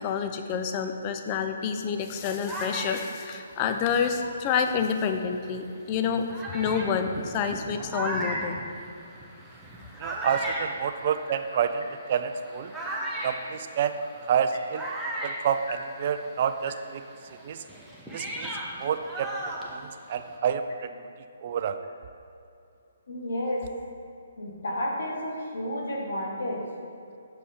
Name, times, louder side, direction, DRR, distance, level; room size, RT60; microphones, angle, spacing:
voice 1, 0.0-6.3 6.5-8.6, left 6 dB, 30° left, 6 dB, 0.5 m, -28 dB
sound 1, 2.0-5.0 5.7-5.8 6.3-16.3 16.6-20.4, right 1 dB, ahead, 0.7 m, -37 dB
voice 2, 10.0-11.8 12.1-12.7 13.2-14.0 14.3-14.8 15.2-17.0 17.4-17.6 18.1-18.5 18.8-19.5 20.1-20.6 21.4-21.8, right 8 dB, 45° right, 8 dB, 0.3 m, -28 dB
voice 3, 23.1-23.7 24.4-26.6, left 1 dB, 75° left, -2 dB, 1.5 m, -31 dB
6.4 x 5.4 x 4.3 m, 2.6 s
hypercardioid pair, 155°, 0 cm